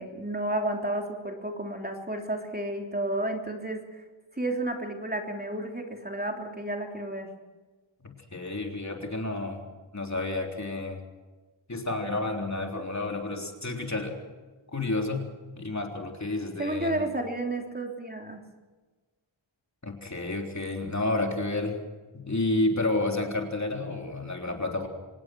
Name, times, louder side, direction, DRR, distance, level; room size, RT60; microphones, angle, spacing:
voice 1, 0.0-3.8 4.4-7.3 16.6-18.4, right 1 dB, 20° right, 2 dB, 3.4 m, -31 dB
voice 2, 8.0-9.6 9.9-11.0 11.7-14.2 14.7-15.3 15.6-17.0 19.8-21.8 22.1-24.9, left 2 dB, 35° left, 2 dB, 3.6 m, -30 dB
25.5 x 19.5 x 6.2 m, 1.3 s
wide cardioid pair, 95°, 47 cm